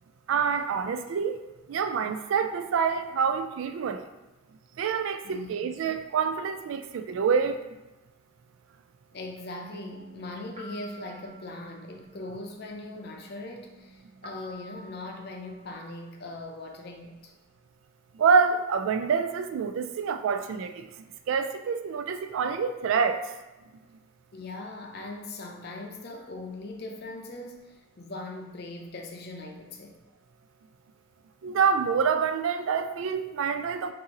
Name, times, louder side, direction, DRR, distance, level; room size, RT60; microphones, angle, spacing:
voice 1, 0.3-1.4 1.7-4.1 4.8-7.6 18.1-20.9 21.3-23.2 31.4-33.9, right 6 dB, 70° right, 9 dB, 0.3 m, -26 dB
voice 2, 5.2-5.7 9.1-17.3 24.3-30.0, left 2 dB, 50° left, 2 dB, 0.5 m, -40 dB
sound 1, 9.6-16.1, right 1 dB, 35° right, 0.6 m, -49 dB
5.4 x 2.6 x 2.9 m, 1.1 s
head